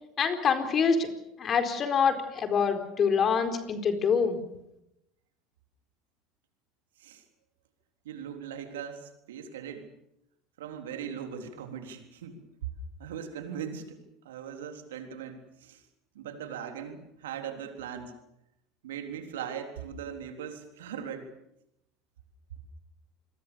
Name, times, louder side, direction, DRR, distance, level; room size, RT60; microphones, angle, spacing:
voice 1, 0.2-1.1 1.4-4.4, left 6 dB, 40° left, 7 dB, 4.3 m, -25 dB
voice 2, 8.0-9.9 10.6-12.4 13.0-14.0 14.3-15.8 16.1-18.1 18.8-21.3, right 8 dB, 80° right, 5 dB, 3.7 m, -39 dB
27.5 x 21.5 x 7.0 m, 0.83 s
hypercardioid pair, 75°, 0 cm